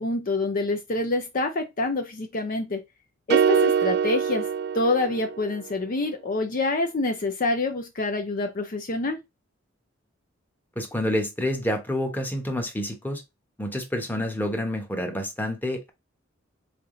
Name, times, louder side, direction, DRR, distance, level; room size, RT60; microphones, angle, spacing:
voice 1, 0.0-2.8 3.3-4.4 4.7-9.2, left 2 dB, 45° left, 0.6 m, -26 dB
sound 1, 3.3-5.6, right 7 dB, 55° right, 0.3 m, -23 dB
voice 2, 10.8-13.2 13.6-15.9, left 1 dB, 10° left, 1.0 m, -28 dB
3.9 x 3.5 x 3.7 m
head